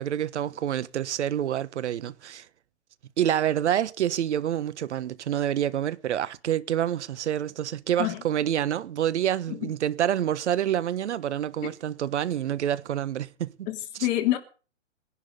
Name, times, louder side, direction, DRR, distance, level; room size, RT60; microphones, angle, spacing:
voice 1, 0.0-2.5 3.2-13.7, right 10 dB, 65° right, 1.3 m, -27 dB
voice 2, 13.7-14.4, left 15 dB, 35° left, 3.2 m, -27 dB
21.5 x 11.5 x 4.0 m
hypercardioid pair, 145°, 38 cm